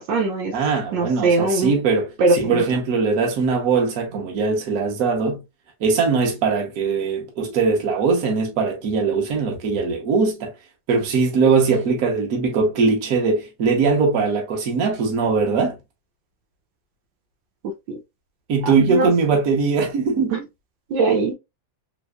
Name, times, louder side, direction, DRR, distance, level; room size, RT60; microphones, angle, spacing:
voice 1, 0.0-0.5 0.9-1.7 2.2-2.6 17.9-18.0 18.6-19.1 20.3-20.4 20.9-21.3, right 3 dB, 75° right, 1.5 m, -21 dB
voice 2, 0.5-5.4 5.8-10.5 10.9-15.8 18.5-20.3, right 4 dB, 55° right, 1.3 m, -21 dB
3.4 x 3.1 x 2.2 m
omnidirectional pair, 2.0 m